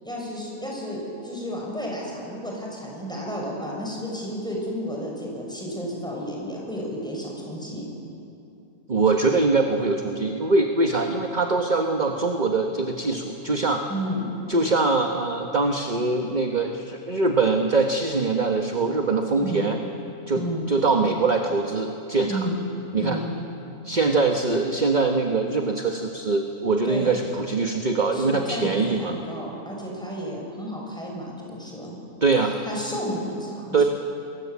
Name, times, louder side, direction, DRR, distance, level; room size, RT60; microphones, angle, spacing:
voice 1, 0.0-7.9 13.9-14.3 19.4-19.7 20.4-20.7 22.3-22.6 23.0-23.3 26.8-27.1 28.1-31.9 32.7-33.9, equal, 5° left, -2 dB, 6.8 m, -32 dB
voice 2, 8.9-13.9 14.5-19.8 20.3-20.4 20.7-22.5 22.9-23.2 23.8-29.1 32.2-32.6 33.7-33.8, right 3 dB, 30° right, 4 dB, 1.4 m, -23 dB
28.5 x 21.0 x 8.6 m, 2.8 s
omnidirectional pair, 1.6 m